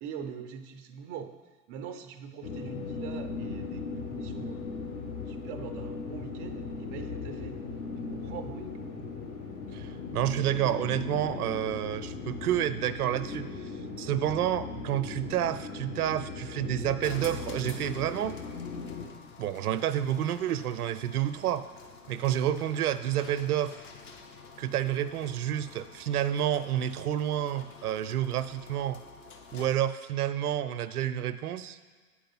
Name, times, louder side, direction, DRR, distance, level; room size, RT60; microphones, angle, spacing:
voice 1, 0.0-1.4 1.7-4.7 5.3-7.6 8.0-9.1, right 7 dB, 25° right, 7 dB, 0.4 m, -43 dB
sound 1, 2.4-19.1, left 4 dB, 55° left, 1.4 m, -38 dB
voice 2, 9.7-13.5 14.0-18.4 19.4-21.7 22.1-23.8 24.6-29.0 29.5-31.8, right 11 dB, 80° right, 13 dB, 0.6 m, -29 dB
sound 2, 17.0-29.9, left 5 dB, 25° left, 0.7 m, -49 dB
8.7 x 4.8 x 5.5 m, 1.4 s
hypercardioid pair, 115°, 44 cm